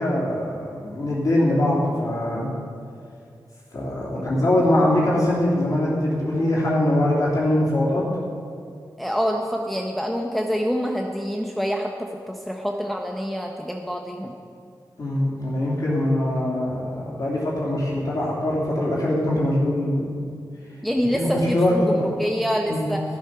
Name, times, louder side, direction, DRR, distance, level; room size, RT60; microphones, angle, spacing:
voice 1, 0.0-2.5 3.7-8.1 15.0-20.1 21.1-22.1 22.7-22.9, left 1 dB, 50° left, -6 dB, 2.8 m, -22 dB
voice 2, 9.0-14.3 20.8-23.0, equal, ahead, 1 dB, 0.8 m, -26 dB
14.0 x 7.3 x 5.8 m, 2.3 s
wide cardioid pair, 75°, 8 cm